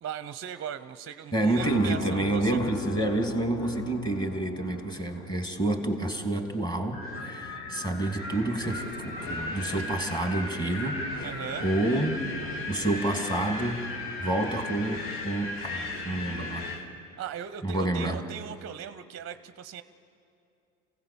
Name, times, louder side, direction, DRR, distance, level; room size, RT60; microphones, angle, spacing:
voice 1, 0.0-2.6 11.2-11.6 17.2-19.8, right 8 dB, 30° right, 12 dB, 0.8 m, -38 dB
voice 2, 1.3-11.3 11.6-12.2 12.7-13.9 14.2-16.7 17.6-18.2, right 2 dB, 10° left, 4 dB, 2.8 m, -28 dB
sound 1, 1.6-7.5, left 7 dB, 35° left, 0.8 m, -42 dB
Wind, 6.9-16.9, left 2 dB, 65° left, 3.0 m, -36 dB
28.0 x 17.0 x 7.1 m, 2.7 s
hypercardioid pair, 70°, 44 cm